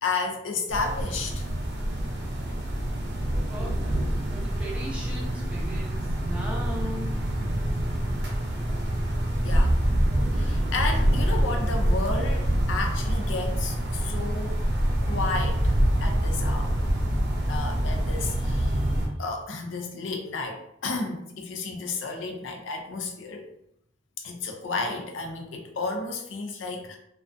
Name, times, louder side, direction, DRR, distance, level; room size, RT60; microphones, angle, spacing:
voice 1, 0.0-1.5 9.4-9.8 10.3-16.7 17.5-18.8 19.2-23.5 24.2-27.0, left 3 dB, 85° left, 3 dB, 0.4 m, -32 dB
sound 1, 0.7-19.1, right 1 dB, 60° right, 0.6 m, -26 dB
voice 2, 3.5-3.9 4.3-7.1, equal, 5° right, -4 dB, 0.5 m, -38 dB
2.4 x 2.3 x 2.4 m, 0.76 s
head